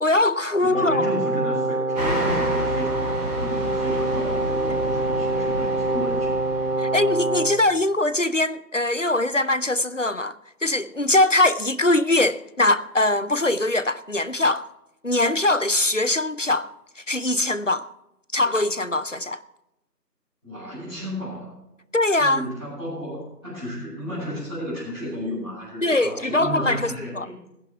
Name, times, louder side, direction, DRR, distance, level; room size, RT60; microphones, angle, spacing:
voice 1, 0.0-1.1 6.8-10.4 10.6-14.7 15.0-16.7 17.0-17.9 18.3-19.4 21.9-22.5 25.8-27.3, left 2 dB, 50° left, 0.6 m, -22 dB
voice 2, 0.6-6.4 20.4-21.5 22.1-27.3, equal, 5° left, 6.2 m, -33 dB
Brass instrument, 0.7-7.6, right 2 dB, 55° right, 1.9 m, -25 dB
sound 1, 1.9-7.4, equal, 25° right, 4.4 m, -31 dB
17.5 x 11.0 x 4.8 m
figure-of-eight pair, 170°, 49 cm